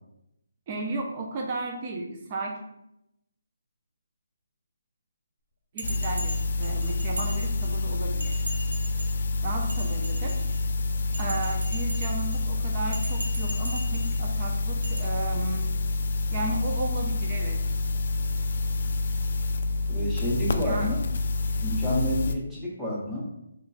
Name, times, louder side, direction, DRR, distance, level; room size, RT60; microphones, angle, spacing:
voice 1, 0.7-2.6 5.7-8.4 9.4-10.5 11.2-15.8 16.3-17.8 20.5-20.9, right 2 dB, 30° right, 1 dB, 0.6 m, -34 dB
sound 1, 5.8-22.3, left 3 dB, 55° left, 0.3 m, -28 dB
Bell, 5.8-7.8 8.2-9.2 9.6-10.6 11.1-12.4 12.8-14.2 14.8-15.0, right 1 dB, 75° right, 0.8 m, -39 dB
voice 2, 19.9-21.0 21.6-23.3, equal, 5° right, -6 dB, 0.9 m, -29 dB
3.7 x 3.2 x 2.3 m, 0.83 s
figure-of-eight pair, 155°, 0 cm